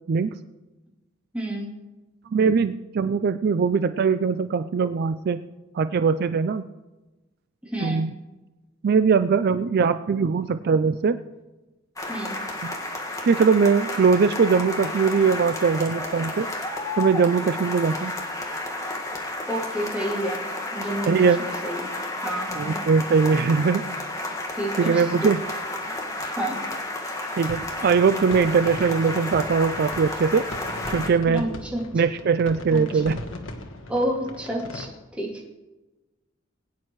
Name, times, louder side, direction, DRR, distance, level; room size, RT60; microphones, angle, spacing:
voice 1, 1.3-1.7 7.6-8.1 12.1-12.4 19.5-20.4 20.7-21.9 22.2-22.9 24.6-25.3 26.4-26.6 31.3-31.8 32.7-33.0 33.9-35.4, right 1 dB, 5° right, -5 dB, 2.8 m, -30 dB
voice 2, 2.3-5.4 5.7-6.6 7.8-8.1 8.8-11.2 13.3-16.5 17.0-18.1 21.1-21.4 22.6-23.9 24.8-25.4 27.4-30.4 30.9-31.4 31.9-33.2, right 5 dB, 55° right, 11 dB, 0.4 m, -21 dB
sound 1, 12.0-31.1, left 2 dB, 15° left, 1.7 m, -32 dB
sound 2, 27.4-34.9, left 1 dB, 85° left, 1.3 m, -38 dB
20.5 x 9.4 x 3.1 m, 1.1 s
head